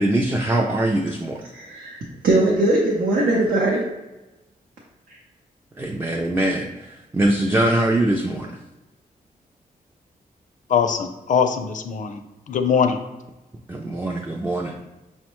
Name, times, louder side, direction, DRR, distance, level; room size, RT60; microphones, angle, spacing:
voice 1, 0.0-1.5 5.8-8.6 13.7-14.8, right 1 dB, 15° right, 0 dB, 0.3 m, -22 dB
voice 2, 1.5-2.0 2.2-3.8, right 2 dB, 80° right, -4 dB, 0.7 m, -20 dB
voice 3, 10.7-12.2 12.5-13.0, left 7 dB, 55° left, 7 dB, 0.4 m, -21 dB
5.4 x 2.1 x 3.0 m, 1.1 s
cardioid pair, 100°, 15 cm